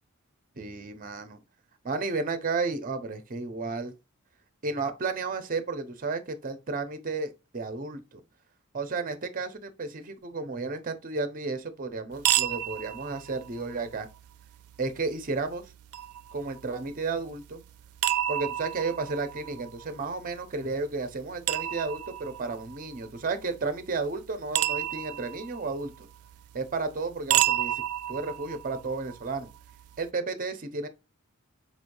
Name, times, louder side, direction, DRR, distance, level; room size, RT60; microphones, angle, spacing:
voice 1, 0.6-1.4 1.8-3.9 4.6-8.2 8.7-14.1 14.8-15.6 16.3-17.6 18.3-26.1 26.5-27.8 28.1-29.5 30.0-30.9, right 3 dB, 40° right, 0.6 m, -32 dB
sound 1, 12.1-30.1, right 13 dB, 85° right, 0.4 m, -33 dB
4.5 x 3.1 x 2.5 m
head